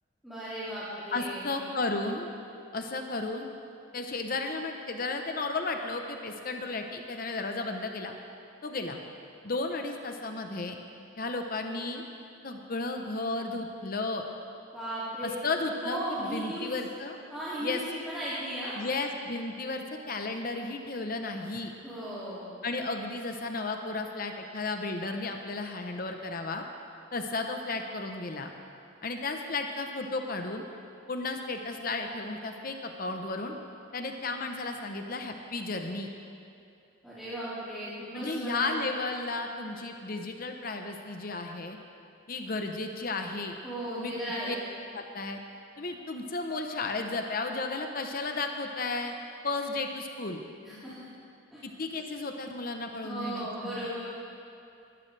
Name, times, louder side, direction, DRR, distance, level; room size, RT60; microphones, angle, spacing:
voice 1, 0.2-1.6 14.7-15.3 15.8-16.7 17.3-18.8 21.8-22.4 37.0-38.8 43.6-44.6 50.6-50.9 51.5-51.6 53.0-54.0, right 1 dB, ahead, -13 dB, 2.5 m, -36 dB
voice 2, 1.1-2.3 2.7-3.5 3.9-8.1 8.6-9.0 9.4-10.8 11.2-12.0 12.4-14.2 15.2-17.2 17.6-17.8 18.7-21.7 22.6-26.6 27.1-28.5 29.0-30.6 31.1-33.6 33.9-36.1 38.1-41.8 42.3-43.5 43.9-44.1 44.5-44.6 44.9-45.4 45.8-49.1 49.4-50.4 51.6-53.9, left 3 dB, 45° left, 4 dB, 0.8 m, -33 dB
19.5 x 12.0 x 3.3 m, 2.6 s
head